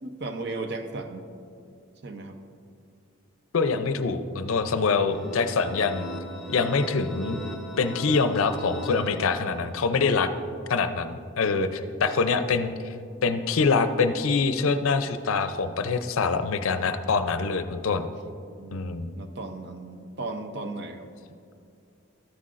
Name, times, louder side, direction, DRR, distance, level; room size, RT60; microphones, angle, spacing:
voice 1, 0.0-1.3 2.0-2.4 18.6-21.1, right 2 dB, 50° right, 6 dB, 0.6 m, -36 dB
voice 2, 3.5-6.0 6.5-7.4 7.8-10.3 10.7-12.9 13.2-18.1 18.7-19.1, left 4 dB, 75° left, 9 dB, 0.5 m, -25 dB
sound 1, 5.1-9.8, equal, ahead, 0.7 m, -39 dB
13.0 x 9.6 x 2.5 m, 2.4 s
head